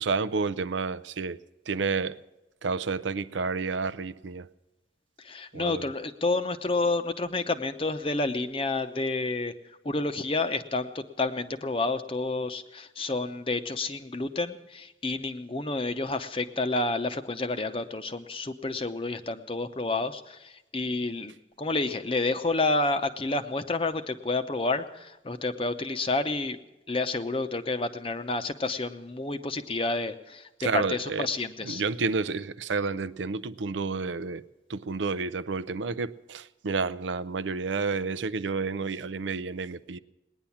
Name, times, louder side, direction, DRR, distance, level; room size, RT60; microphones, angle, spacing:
voice 1, 0.0-1.4 1.7-2.2 2.6-4.5 5.5-5.8 30.6-31.3 31.6-34.4 34.7-40.0, right 4 dB, 90° right, 0.5 m, -30 dB
voice 2, 5.2-9.5 9.8-26.6 26.9-31.8, left 3 dB, 30° left, 0.7 m, -29 dB
19.0 x 10.0 x 7.2 m
head